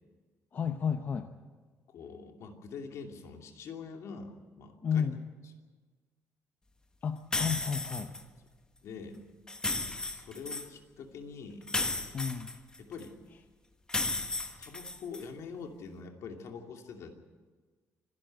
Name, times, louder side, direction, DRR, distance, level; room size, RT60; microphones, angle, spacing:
voice 1, 0.5-1.3 4.8-5.2 7.0-8.1 12.1-12.5, left 7 dB, 35° left, 7 dB, 0.8 m, -32 dB
voice 2, 1.9-5.1 8.8-9.2 10.1-11.6 12.8-13.1 14.6-17.1, left 5 dB, 65° left, 3 dB, 2.7 m, -44 dB
sound 1, 7.3-8.2 9.5-10.7 11.7-13.0 13.9-15.2, left 2 dB, 15° left, 1.2 m, -34 dB
25.0 x 12.0 x 9.0 m, 1.4 s
cardioid pair, 160°, 5 cm